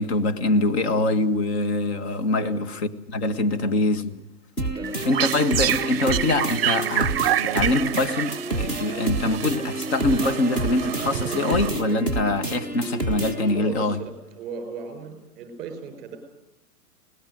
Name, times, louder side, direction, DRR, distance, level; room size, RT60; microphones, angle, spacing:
voice 1, 0.0-2.8 3.1-4.2 5.0-14.0, left 2 dB, 45° left, 1.8 m, -24 dB
voice 2, 2.4-2.7 3.5-3.7 4.7-5.4 13.5-16.2, right 5 dB, 20° right, 4.6 m, -37 dB
sound 1, 4.6-13.6, right 2 dB, 10° left, 0.8 m, -29 dB
sound 2, 4.8-12.1, right 11 dB, 40° right, 0.7 m, -28 dB
22.5 x 18.5 x 7.8 m
hypercardioid pair, 165°, 46 cm